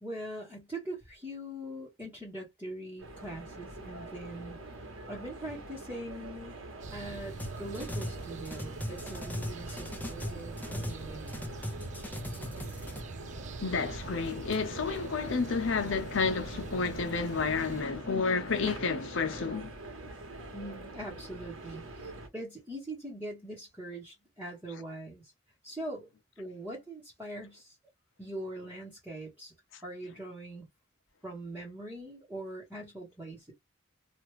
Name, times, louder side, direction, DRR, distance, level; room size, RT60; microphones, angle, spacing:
voice 1, 0.0-4.6 5.1-6.6 6.9-11.4 20.5-25.3 25.6-26.1 26.4-27.8 28.2-29.5 29.8-30.7 31.2-33.5, right 1 dB, 10° right, 1.1 m, -42 dB
sound 1, 3.0-22.3, right 2 dB, 85° right, 1.3 m, -45 dB
sound 2, 6.8-17.8, right 3 dB, 35° right, 0.3 m, -44 dB
sound 3, 7.4-8.2 8.4-11.0 11.3-13.0, left 1 dB, 10° left, 0.7 m, -38 dB
voice 2, 13.6-19.7, left 4 dB, 65° left, 0.7 m, -30 dB
3.0 x 2.4 x 3.1 m
head